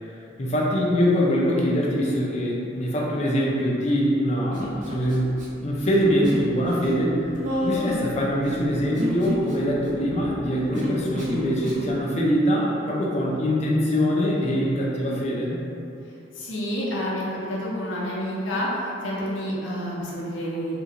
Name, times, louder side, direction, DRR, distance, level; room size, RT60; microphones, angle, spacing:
voice 1, 0.4-5.4 5.6-7.2 7.6-15.6, equal, 35° left, -3 dB, 0.4 m, -23 dB
Human voice, 4.5-5.5 5.7-6.5 6.8-12.0, left 1 dB, 40° right, 0.5 m, -31 dB
voice 2, 16.4-20.8, equal, 85° left, -5 dB, 0.6 m, -29 dB
2.9 x 2.5 x 2.8 m, 2.7 s
head